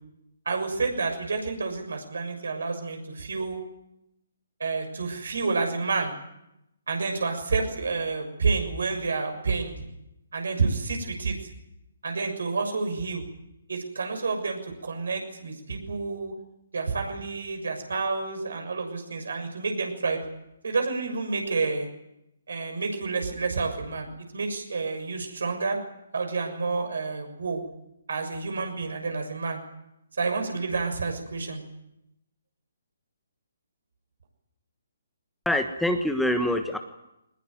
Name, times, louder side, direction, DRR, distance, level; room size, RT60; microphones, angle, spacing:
voice 1, 0.4-3.6 4.6-6.1 6.9-9.7 10.3-11.4 12.0-13.2 13.7-16.3 16.7-20.2 20.6-21.9 22.5-25.8 26.1-27.6 28.1-29.6 30.1-31.6, right 4 dB, 65° right, 5 dB, 6.7 m, -29 dB
voice 2, 35.4-36.8, left 1 dB, ahead, 6 dB, 1.4 m, -25 dB
22.5 x 20.5 x 9.4 m, 0.86 s
figure-of-eight pair, 135°, 0 cm